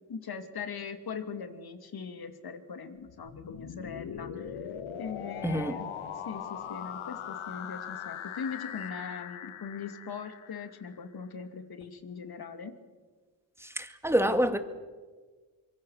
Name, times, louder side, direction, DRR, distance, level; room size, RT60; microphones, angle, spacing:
voice 1, 0.1-4.7 5.0-5.9 6.3-12.7, left 6 dB, 45° left, 8 dB, 2.7 m, -40 dB
sound 1, 3.1-11.0, left 9 dB, 75° left, 1.9 m, -40 dB
voice 2, 5.4-5.8 13.6-14.6, equal, 5° right, 8 dB, 2.1 m, -27 dB
25.0 x 23.0 x 6.6 m, 1.4 s
cardioid pair, 80°, 49 cm